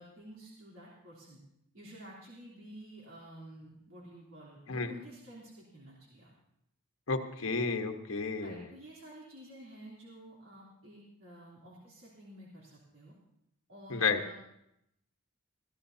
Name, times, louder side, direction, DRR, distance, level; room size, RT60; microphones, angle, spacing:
voice 1, 0.0-1.4 1.7-6.3 7.4-7.7 8.4-13.2 13.7-14.3, right 1 dB, 75° right, -6 dB, 3.4 m, -51 dB
voice 2, 7.1-8.6 13.9-14.2, left 4 dB, 70° left, 5 dB, 1.2 m, -31 dB
22.5 x 15.5 x 2.8 m, 0.80 s
head